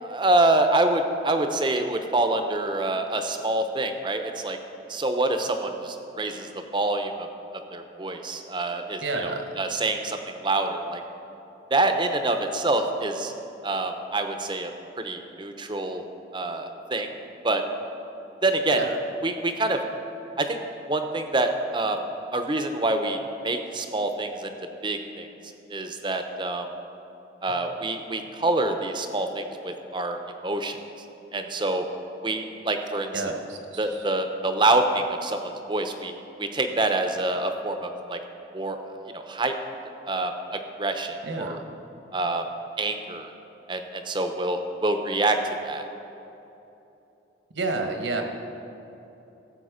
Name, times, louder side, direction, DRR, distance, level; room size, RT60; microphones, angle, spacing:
voice 1, 0.0-4.6 4.9-7.3 7.7-11.0 11.7-13.3 13.6-14.7 15.0-16.0 16.3-17.1 17.4-17.6 18.4-18.8 19.2-19.8 20.4-20.6 20.9-22.0 22.3-23.2 23.4-24.5 24.8-25.3 25.7-26.7 27.4-30.8 31.3-31.8 32.2-33.1 33.8-36.1 36.4-38.2 38.5-38.8 39.1-39.6 40.1-41.6 42.1-42.4 42.8-43.3 43.7-45.9, right 2 dB, 25° right, 6 dB, 0.7 m, -26 dB
voice 2, 9.0-9.5 18.7-19.0 33.1-34.1 41.2-41.7 47.5-48.2, right 3 dB, 75° right, 4 dB, 1.3 m, -30 dB
15.5 x 7.6 x 5.0 m, 3.0 s
head